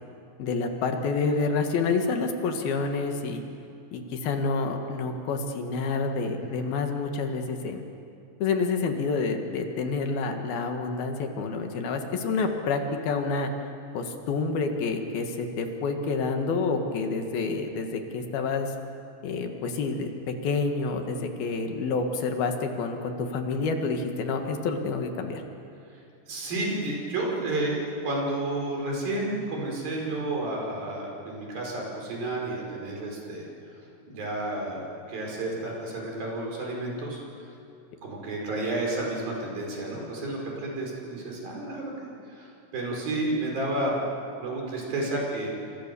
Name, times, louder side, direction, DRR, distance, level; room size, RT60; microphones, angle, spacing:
voice 1, 0.4-3.4 3.9-7.8 8.4-13.5 13.9-18.7 19.2-25.4, left 4 dB, 75° left, 4 dB, 3.6 m, -28 dB
voice 2, 26.3-33.5 34.1-37.5 38.0-41.9 42.3-44.0 44.4-45.5, right 2 dB, 65° right, -1 dB, 6.9 m, -31 dB
28.5 x 25.5 x 7.0 m, 2.6 s
omnidirectional pair, 4.5 m